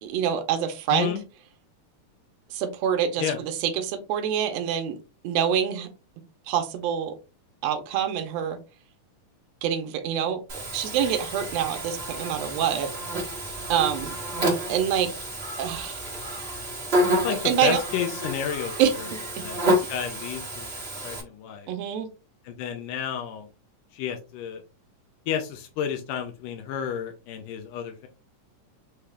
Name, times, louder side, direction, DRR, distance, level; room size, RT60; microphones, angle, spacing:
voice 1, 0.0-1.2 2.5-5.0 5.2-5.9 6.5-7.1 7.6-8.6 9.6-10.4 10.7-12.9 13.7-14.1 14.7-15.1 15.6-16.0 17.3-17.8 18.8-18.9 21.7-22.1, right 9 dB, 75° right, 6 dB, 1.6 m, -26 dB
voice 2, 0.9-1.2 3.2-3.4 17.2-18.7 19.0-19.1 19.4-20.7 21.0-21.7 22.5-23.5 23.9-24.6 25.3-28.1, left 8 dB, 85° left, 4 dB, 2.2 m, -31 dB
Buzz, 10.5-21.2, equal, 55° right, 0.6 m, -29 dB
5.6 x 3.3 x 2.4 m, 0.30 s
omnidirectional pair, 3.6 m